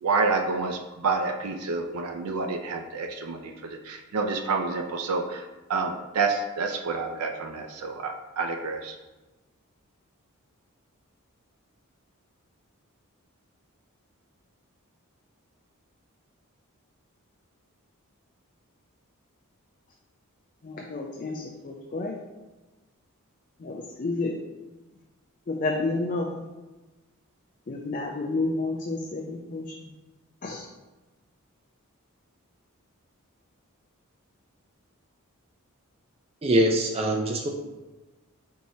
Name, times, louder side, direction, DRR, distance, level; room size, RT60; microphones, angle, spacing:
voice 1, 0.0-9.0, right 4 dB, 90° right, 4 dB, 0.4 m, -29 dB
voice 2, 20.6-22.2 23.6-24.3 25.5-26.4 27.7-29.7 30.4-30.7, left 2 dB, 40° left, 0 dB, 0.4 m, -30 dB
voice 3, 36.4-37.5, right 1 dB, 25° right, 1 dB, 0.4 m, -23 dB
4.6 x 4.2 x 2.7 m, 1.1 s
head